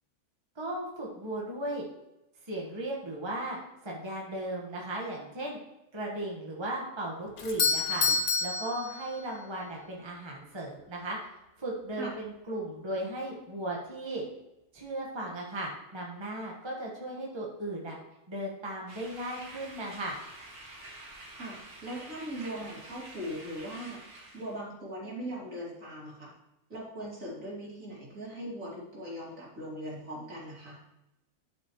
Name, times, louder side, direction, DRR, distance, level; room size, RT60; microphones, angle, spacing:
voice 1, 0.5-1.8 2.4-3.6 3.8-5.6 5.9-11.2 11.6-14.2 14.7-18.0 18.3-20.2, right 1 dB, 20° right, -2 dB, 1.5 m, -36 dB
Doorbell, 7.4-9.5, left 4 dB, 45° left, 0.8 m, -29 dB
sound 1, 18.9-24.6, right 2 dB, 75° right, 2.2 m, -48 dB
voice 2, 21.4-24.0 24.3-26.3 26.7-30.8, equal, 60° right, -5 dB, 3.2 m, -40 dB
12.0 x 6.1 x 3.1 m, 0.93 s
omnidirectional pair, 1.6 m